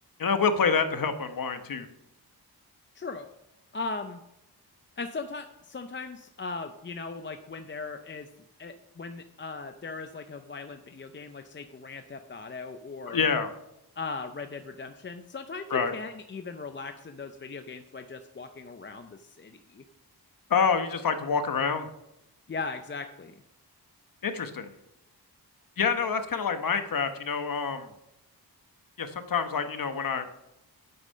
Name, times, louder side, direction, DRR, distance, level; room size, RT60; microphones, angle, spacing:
voice 1, 0.2-1.9 13.1-13.5 15.7-15.9 20.5-21.9 24.2-24.7 25.8-27.9 29.0-30.2, left 5 dB, 60° left, 8 dB, 1.0 m, -27 dB
voice 2, 3.0-3.3 3.7-4.2 5.0-8.3 8.6-13.3 14.0-19.8 22.5-23.3, left 4 dB, 30° left, 7 dB, 0.5 m, -38 dB
9.3 x 8.2 x 5.5 m, 0.85 s
wide cardioid pair, 145°, 39 cm